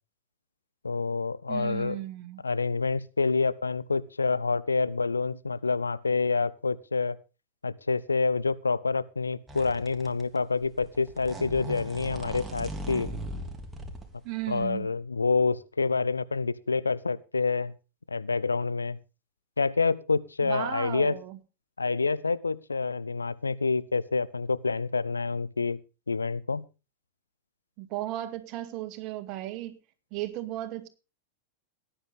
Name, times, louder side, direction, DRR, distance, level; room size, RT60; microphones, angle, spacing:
voice 1, 0.8-2.0 2.4-7.2 7.6-13.1 14.5-17.7 18.1-19.0 19.6-21.2 21.8-25.8 26.1-26.6, left 4 dB, 80° left, 0.7 m, -27 dB
voice 2, 1.5-2.4 14.2-14.9 20.4-21.4 27.8-29.8 30.1-30.9, right 14 dB, 40° right, 2.2 m, -35 dB
sound 1, 9.5-10.4 10.6-14.1 14.6-14.7, right 1 dB, 10° right, 3.2 m, -38 dB
18.5 x 10.0 x 3.7 m
figure-of-eight pair, 90°, 0 cm